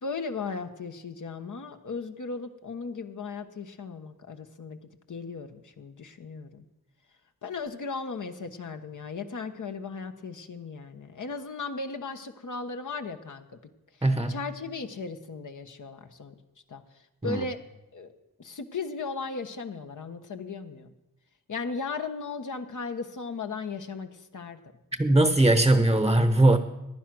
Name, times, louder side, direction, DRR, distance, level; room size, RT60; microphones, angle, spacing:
voice 1, 0.0-4.8 5.1-6.6 7.4-13.6 13.9-16.4 16.7-17.6 17.9-18.1 18.4-20.9 21.5-24.6, left 4 dB, 60° left, 7 dB, 1.3 m, -36 dB
voice 2, 14.0-14.4 17.2-17.4 25.0-26.6, right 2 dB, 10° right, 10 dB, 0.9 m, -20 dB
15.5 x 10.5 x 6.2 m, 0.96 s
cardioid pair, 75°, 34 cm